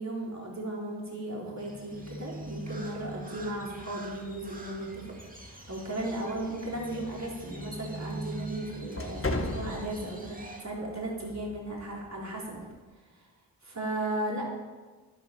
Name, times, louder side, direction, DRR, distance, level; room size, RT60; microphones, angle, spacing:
voice 1, 0.0-12.6 13.2-13.3 13.6-14.4, right 1 dB, 45° right, -3 dB, 3.8 m, -36 dB
Crow, 1.6-10.6, right 2 dB, 20° right, 2.2 m, -44 dB
sound 1, 1.9-12.8, left 2 dB, 35° left, 1.6 m, -42 dB
11.0 x 11.0 x 5.8 m, 1.3 s
cardioid pair, 55°, 38 cm